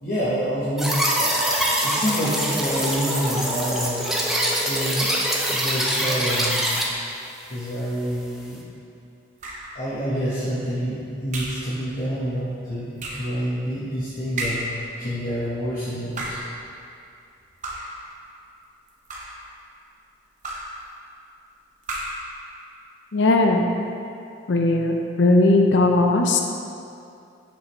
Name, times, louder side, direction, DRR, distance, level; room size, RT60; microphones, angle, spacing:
voice 1, 0.0-4.1 4.6-5.1 5.5-6.7 7.5-8.6 9.7-14.6 15.0-16.4, equal, 45° left, -10 dB, 1.0 m, -27 dB
Rewind cassette tape, 0.8-6.8, equal, ahead, 0.5 m, -24 dB
sound 1, 9.4-9.8 11.3-11.7 13.0-13.3 14.4-14.8 16.0-16.5 17.6-18.0 18.9-19.5 20.4-20.8 21.8-22.3, right 1 dB, 40° right, 0.7 m, -32 dB
voice 2, 23.1-23.6 24.5-26.5, left 2 dB, 65° left, 3 dB, 0.5 m, -18 dB
6.9 x 5.1 x 3.0 m, 2.6 s
head